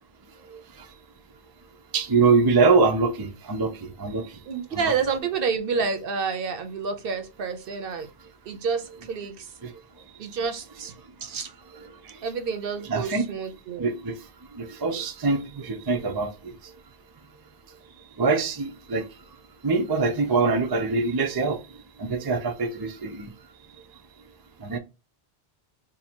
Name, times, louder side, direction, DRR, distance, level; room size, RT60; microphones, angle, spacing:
voice 1, 1.9-4.3 4.7-4.9 9.6-9.7 12.1-12.2 12.8-13.3 13.8-14.1 14.6-16.5 18.2-19.1 19.6-21.6 22.0-23.3 24.6-24.8, right 4 dB, 35° right, 0.3 m, -24 dB
voice 2, 4.5-8.1 8.5-9.5 10.2-10.9 11.2-11.5 12.2-13.9, right 5 dB, 60° right, 0.8 m, -29 dB
2.7 x 2.6 x 4.2 m
omnidirectional pair, 1.1 m